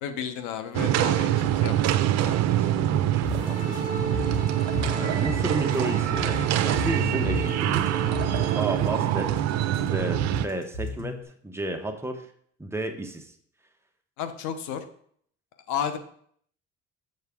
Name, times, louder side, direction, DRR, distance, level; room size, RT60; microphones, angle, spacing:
voice 1, 0.0-2.4 14.2-14.8 15.7-16.0, left 8 dB, 85° left, 9 dB, 0.9 m, -33 dB
sound 1, 0.7-10.5, right 12 dB, 65° right, 0.6 m, -25 dB
voice 2, 2.2-3.8 4.8-8.0 8.5-9.4 9.8-11.2 11.4-12.3 12.6-13.3, right 2 dB, 10° right, 4 dB, 0.9 m, -33 dB
sound 2, 3.2-11.2, left 2 dB, 45° left, 1.8 m, -34 dB
sound 3, 3.3-8.6, right 2 dB, 25° left, 2.0 m, -37 dB
7.8 x 6.4 x 3.6 m, 0.62 s
cardioid pair, 120°, 29 cm